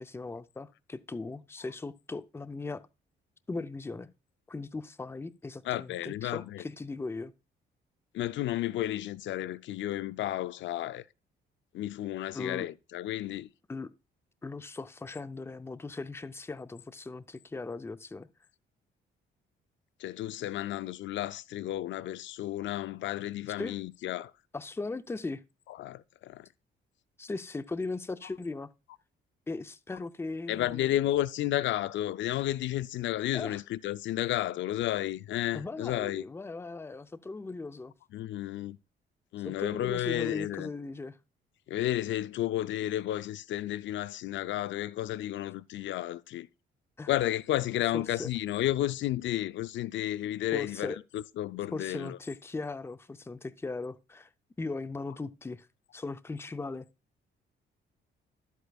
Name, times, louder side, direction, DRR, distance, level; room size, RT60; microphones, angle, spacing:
voice 1, 0.0-2.8 3.5-4.1 4.5-7.3 12.3-12.7 13.7-13.9 14.4-18.3 23.6-23.8 24.5-25.4 27.2-28.7 29.5-30.9 33.3-33.6 35.5-37.9 39.4-41.2 47.0-47.1 47.9-48.3 50.5-51.0 51.7-54.3 54.6-55.7 55.9-56.9, left 3 dB, 10° left, 0.5 m, -38 dB
voice 2, 5.7-6.6 8.1-11.0 11.7-13.5 20.0-24.3 25.8-26.5 30.5-36.2 38.1-38.8 39.3-40.7 41.7-46.5 47.1-52.2, left 13 dB, 70° left, 0.4 m, -32 dB
11.5 x 8.2 x 2.3 m
cardioid pair, 90°, 20 cm